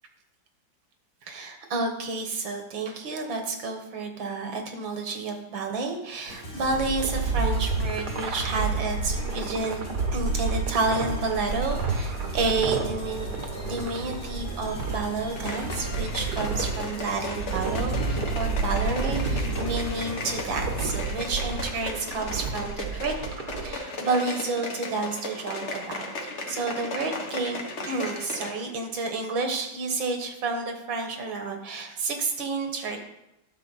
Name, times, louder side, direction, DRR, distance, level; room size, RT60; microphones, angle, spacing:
voice 1, 1.3-9.8 10.1-13.3 13.6-23.1 23.6-27.6 27.9-33.0, right 3 dB, 75° right, 4 dB, 2.0 m, -30 dB
sound 1, 6.3-21.3, equal, 90° left, 3.1 m, -39 dB
sound 2, 6.6-23.7, right 4 dB, 60° right, 1.5 m, -30 dB
sound 3, 15.3-28.6 28.9-29.0, left 2 dB, 40° left, 1.3 m, -36 dB
11.5 x 6.6 x 4.0 m, 0.89 s
omnidirectional pair, 2.1 m